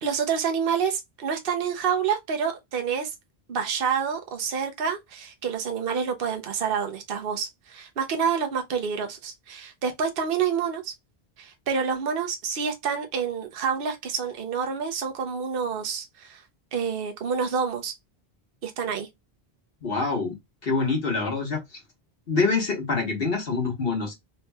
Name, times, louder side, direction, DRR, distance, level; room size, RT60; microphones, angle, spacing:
voice 1, 0.0-3.1 3.5-10.9 11.4-16.4 16.7-17.9 18.6-19.1, right 6 dB, 65° right, 1.0 m, -28 dB
voice 2, 19.8-20.4 20.6-21.8 22.3-24.1, left 4 dB, 65° left, 1.5 m, -25 dB
3.7 x 3.0 x 2.2 m
omnidirectional pair, 1.0 m